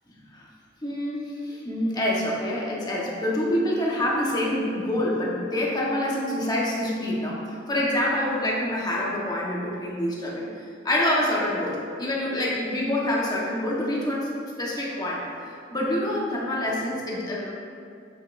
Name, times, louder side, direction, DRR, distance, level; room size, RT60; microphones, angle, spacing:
voice 1, 0.8-10.5 10.8-14.3 14.6-17.5, left 1 dB, 20° left, -4 dB, 1.1 m, -26 dB
8.9 x 5.5 x 2.6 m, 2.3 s
head